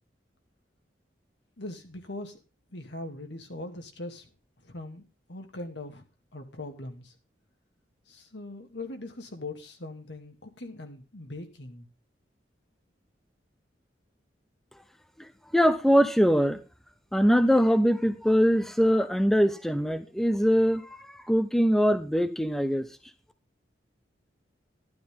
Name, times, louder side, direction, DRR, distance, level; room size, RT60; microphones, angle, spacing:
voice 1, 1.6-2.4 2.7-4.3 4.6-5.0 5.3-6.0 6.3-7.1 8.1-11.9, left 2 dB, 75° left, 4 dB, 2.1 m, -40 dB
voice 2, 15.5-16.6 17.1-22.9, equal, ahead, 9 dB, 0.7 m, -22 dB
12.0 x 12.0 x 3.7 m, 0.31 s
head